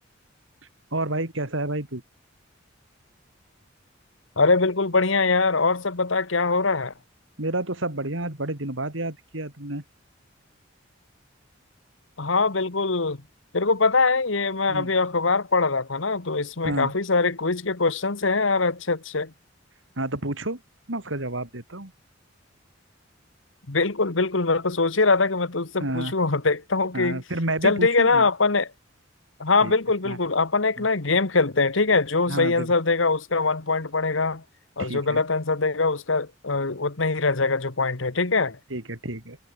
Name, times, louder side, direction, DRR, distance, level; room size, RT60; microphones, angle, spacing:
voice 1, 0.9-2.0 7.4-9.8 14.7-14.9 16.6-16.9 20.0-20.6 20.9-21.9 25.8-26.1 26.9-28.3 29.6-29.7 30.0-30.2 30.8-30.9 32.3-32.7 34.8-35.2 38.7-39.4, right 2 dB, 75° right, 3.8 m, -30 dB
voice 2, 4.4-6.9 12.2-13.2 13.5-19.3 23.7-27.2 27.6-28.7 29.4-34.4 34.8-38.6, left 3 dB, 75° left, 1.6 m, -23 dB
head